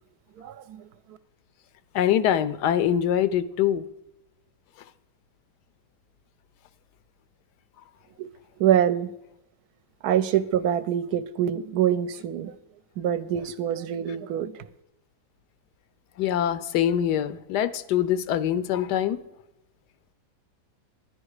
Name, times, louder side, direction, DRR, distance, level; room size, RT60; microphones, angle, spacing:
voice 1, 0.4-0.9 8.2-8.3 8.6-9.1 10.0-12.5 13.0-14.6, right 10 dB, 75° right, 13 dB, 1.1 m, -25 dB
voice 2, 1.9-3.8 16.2-19.2, left 10 dB, 85° left, 15 dB, 1.2 m, -24 dB
11.0 x 9.8 x 4.8 m, 0.88 s
omnidirectional pair, 1.7 m